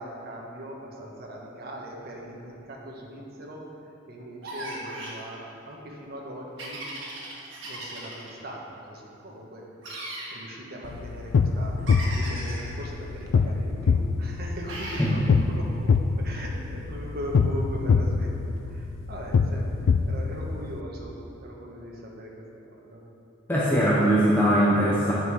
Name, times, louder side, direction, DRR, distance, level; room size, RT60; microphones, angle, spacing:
voice 1, 0.0-3.6 4.1-6.8 7.6-10.0 10.3-19.7 20.1-22.3 22.8-23.0, right 1 dB, 50° right, -2 dB, 1.3 m, -40 dB
sound 1, 4.4-5.2 6.6-8.3 9.8-10.3 11.9-12.7 14.7-15.1, right 1 dB, 65° right, 2.0 m, -37 dB
sound 2, 10.8-20.8, left 5 dB, 75° left, 0.3 m, -25 dB
voice 2, 23.5-25.1, equal, 10° left, -8 dB, 0.9 m, -21 dB
9.1 x 5.7 x 4.8 m, 2.8 s
head